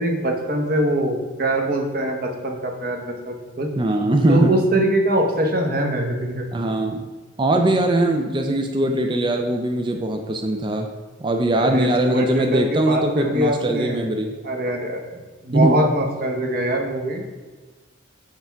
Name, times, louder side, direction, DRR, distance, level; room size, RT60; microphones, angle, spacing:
voice 1, 0.0-3.7 4.3-6.5 11.6-14.1 14.4-17.2, right 1 dB, 50° right, 3 dB, 0.9 m, -23 dB
voice 2, 3.8-4.5 6.5-7.1 7.4-10.9 11.2-14.3 15.5-15.8, right 1 dB, 25° right, 4 dB, 0.4 m, -21 dB
6.6 x 3.4 x 5.7 m, 1.3 s
head